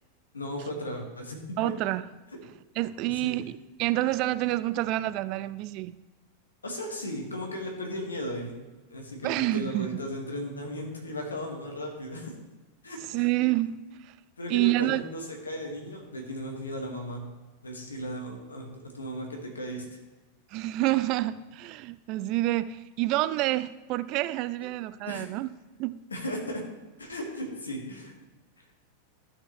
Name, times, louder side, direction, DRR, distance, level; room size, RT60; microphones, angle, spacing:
voice 1, 0.3-1.7 3.0-3.4 6.6-8.5 8.9-12.3 12.8-13.0 14.4-17.2 17.6-18.7 18.9-20.0 25.0-25.2 26.1-26.6 27.0-28.1 28.6-28.7, equal, 75° left, 1 dB, 1.7 m, -36 dB
voice 2, 1.6-2.1 2.8-6.0 9.2-9.9 13.1-14.1 14.5-15.0 20.5-25.5 25.8-26.0, right 17 dB, 40° right, 15 dB, 0.3 m, -28 dB
13.5 x 6.3 x 3.2 m, 1.2 s
figure-of-eight pair, 90°, 0 cm